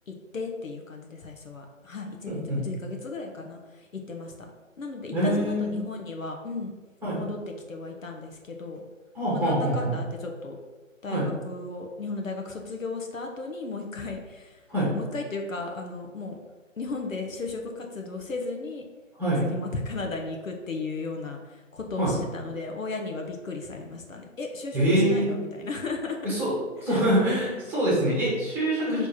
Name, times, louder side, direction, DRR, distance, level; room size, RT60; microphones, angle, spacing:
voice 1, 0.1-4.5 4.8-6.8 7.1-7.4 7.7-8.8 9.3-10.6 11.0-14.6 14.9-16.4 16.8-18.8 19.4-26.2 26.9-27.0 28.9-29.1, left 3 dB, 75° left, 2 dB, 1.2 m, -35 dB
voice 2, 2.3-2.6 5.1-5.8 7.0-7.2 9.1-10.0 11.1-11.3 14.7-14.9 19.2-19.4 22.0-22.1 24.7-25.3 26.2-26.6 26.8-29.1, right 1 dB, 5° right, -7 dB, 1.6 m, -24 dB
6.3 x 3.4 x 4.3 m, 1.3 s
figure-of-eight pair, 145°, 40 cm